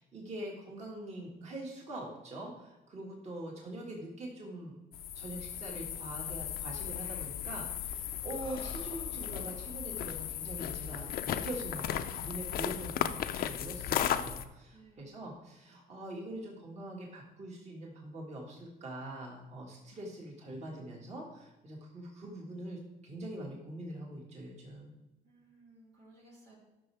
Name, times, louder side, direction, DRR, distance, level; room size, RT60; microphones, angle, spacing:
voice 1, 0.0-4.8 5.1-24.9, right 1 dB, 40° right, -2 dB, 1.9 m, -43 dB
sound 1, 4.9-14.5, left 10 dB, 60° left, 0.5 m, -36 dB
Breathing, 8.2-11.8, left 4 dB, 30° left, 0.8 m, -54 dB
voice 2, 14.7-15.2 25.2-26.6, right 2 dB, 85° right, -3 dB, 3.1 m, -59 dB
12.0 x 6.1 x 3.4 m, 1.0 s
cardioid pair, 110°, 17 cm